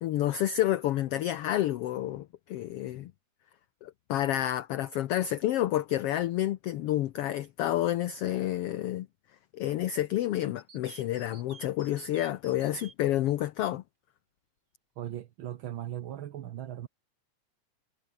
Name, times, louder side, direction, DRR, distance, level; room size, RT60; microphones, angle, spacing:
voice 1, 0.0-3.1 3.8-9.1 9.5-13.8, left 13 dB, 70° left, 1.4 m, -29 dB
sound 1, 10.6-12.9, right 4 dB, 35° right, 3.3 m, -51 dB
voice 2, 15.0-16.9, right 11 dB, 75° right, 1.1 m, -38 dB
omnidirectional pair, 3.5 m